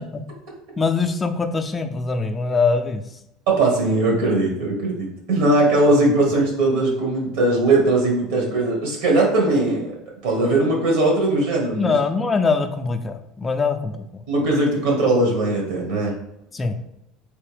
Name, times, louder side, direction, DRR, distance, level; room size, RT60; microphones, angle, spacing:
voice 1, 0.8-3.2 11.7-14.2 16.5-16.8, left 4 dB, 20° left, 6 dB, 0.3 m, -23 dB
voice 2, 3.5-9.9 10.2-11.9 14.3-16.1, right 2 dB, 75° right, -1 dB, 1.4 m, -19 dB
3.3 x 2.7 x 3.4 m, 0.80 s
supercardioid pair, 120°, 0 cm